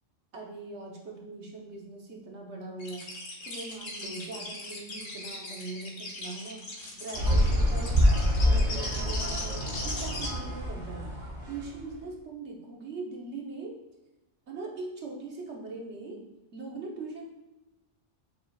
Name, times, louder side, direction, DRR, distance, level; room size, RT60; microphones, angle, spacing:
voice 1, 0.3-3.1 3.4-6.7 7.0-8.0 8.4-11.0 11.5-13.8 14.5-16.2 16.5-17.2, right 3 dB, 65° right, -1 dB, 1.4 m, -41 dB
sound 1, 2.8-10.3, left 2 dB, 85° left, 1.4 m, -39 dB
sound 2, 7.1-11.8, equal, 85° right, 1.5 m, -26 dB
7.2 x 5.6 x 2.4 m, 1.0 s
omnidirectional pair, 1.3 m